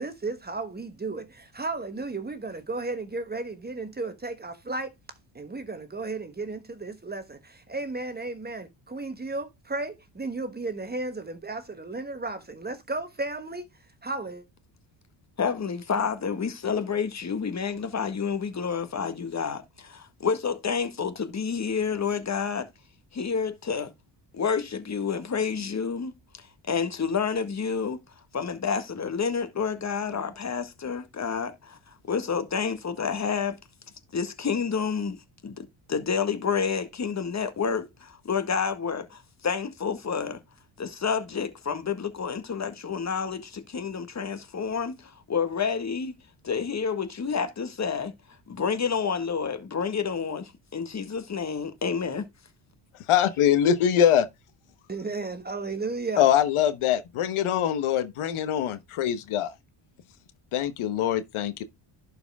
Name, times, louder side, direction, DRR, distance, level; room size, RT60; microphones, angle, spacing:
voice 1, 0.0-4.9 5.3-13.7 14.0-14.4 54.9-56.3, right 3 dB, 20° right, 1.2 m, -34 dB
voice 2, 15.4-22.7 23.1-23.9 24.3-26.1 26.4-28.0 28.3-31.8 32.1-33.6 34.1-35.2 35.4-40.4 40.8-46.2 46.4-48.1 48.5-52.3, left 6 dB, 30° left, 1.7 m, -29 dB
voice 3, 53.1-54.3 56.2-59.5 60.5-61.6, left 10 dB, 75° left, 1.3 m, -23 dB
11.0 x 5.0 x 3.5 m
cardioid pair, 120°, 50 cm